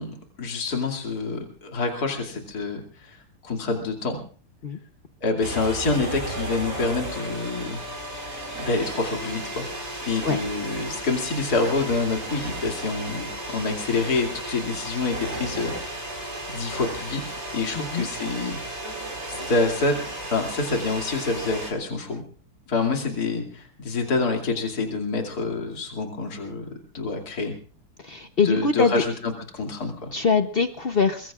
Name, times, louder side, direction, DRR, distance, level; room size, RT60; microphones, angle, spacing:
voice 1, 0.0-3.2 3.4-4.2 5.2-7.8 8.5-9.7 10.0-17.2 17.5-18.6 19.3-22.2 22.7-27.5 28.4-30.1, left 3 dB, 45° left, 2 dB, 3.1 m, -27 dB
sound 1, 5.4-21.7, right 1 dB, 30° right, 4.8 m, -34 dB
voice 2, 17.8-18.1 28.0-29.0 30.1-31.3, left 5 dB, 75° left, 8 dB, 0.5 m, -23 dB
23.5 x 21.5 x 2.4 m, 0.41 s
omnidirectional pair, 2.3 m